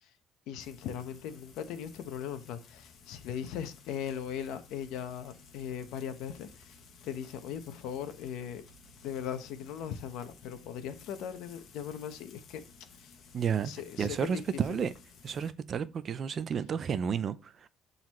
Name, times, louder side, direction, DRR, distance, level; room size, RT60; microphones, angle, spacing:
voice 1, 0.5-6.8 7.0-8.7 9.0-12.6 12.9-13.1 13.6-14.4, left 8 dB, 70° left, 1.0 m, -39 dB
Frying (food), 0.6-15.5, left 5 dB, 45° left, 1.2 m, -56 dB
voice 2, 13.3-13.7 14.0-14.9 15.2-17.7, right 7 dB, 30° right, 0.4 m, -31 dB
11.5 x 4.0 x 3.1 m
cardioid pair, 180°, 0 cm